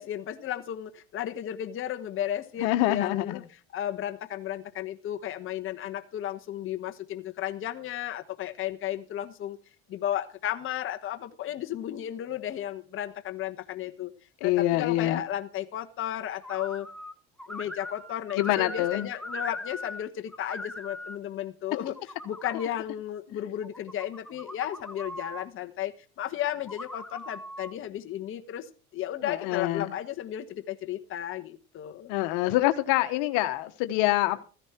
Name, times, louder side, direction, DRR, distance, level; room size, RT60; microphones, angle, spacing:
voice 1, 0.0-3.4 3.7-9.6 9.9-14.1 14.4-16.9 17.5-32.1, left 11 dB, 40° left, 1.2 m, -34 dB
voice 2, 2.6-3.4 14.4-15.2 18.3-19.1 29.2-30.0 32.1-34.4, left 16 dB, 70° left, 1.3 m, -25 dB
sound 1, 16.4-17.1 17.4-20.0 20.3-21.2 21.7-22.7 23.6-25.5 26.6-27.7, left 1 dB, ahead, 1.0 m, -40 dB
15.0 x 10.5 x 4.5 m
supercardioid pair, 115°, 32 cm